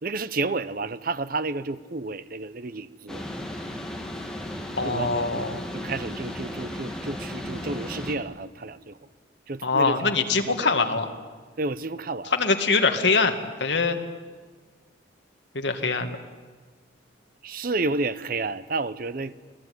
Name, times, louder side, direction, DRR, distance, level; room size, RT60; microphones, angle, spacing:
voice 1, 0.0-3.2 4.8-5.4 5.7-9.0 9.5-10.8 11.6-12.3 17.4-19.3, right 3 dB, 50° right, 15 dB, 0.8 m, -31 dB
sound 1, 3.1-8.1, left 1 dB, 5° left, 2.6 m, -35 dB
voice 2, 4.8-5.5 9.6-11.1 12.3-14.0 15.5-16.1, left 4 dB, 65° left, 6 dB, 2.1 m, -23 dB
28.0 x 19.5 x 9.6 m, 1.5 s
head